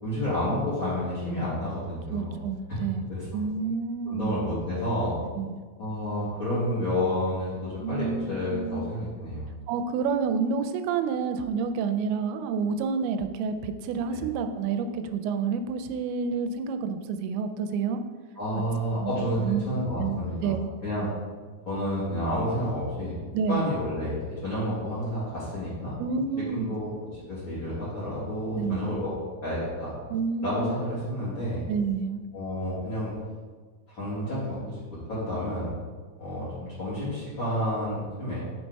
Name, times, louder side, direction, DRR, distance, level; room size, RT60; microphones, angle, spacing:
voice 1, 0.0-2.4 2.7-2.8 3.1-3.2 4.1-5.2 5.8-9.5 14.1-14.2 18.4-20.6 20.8-21.1 21.7-23.2 23.5-26.0 26.5-29.1 29.4-29.9 30.4-31.6 32.3-33.1 33.9-34.8 35.1-35.7 36.2-38.4, left 1 dB, 40° left, -10 dB, 2.2 m, -30 dB
voice 2, 2.1-4.4 5.4-5.6 7.8-8.8 9.7-18.0 19.0-19.6 20.0-20.6 23.3-23.6 26.0-26.8 28.6-29.0 30.1-30.8 31.7-32.2, right 5 dB, 90° right, 8 dB, 2.5 m, -29 dB
8.4 x 4.2 x 4.6 m, 1.5 s
omnidirectional pair, 4.4 m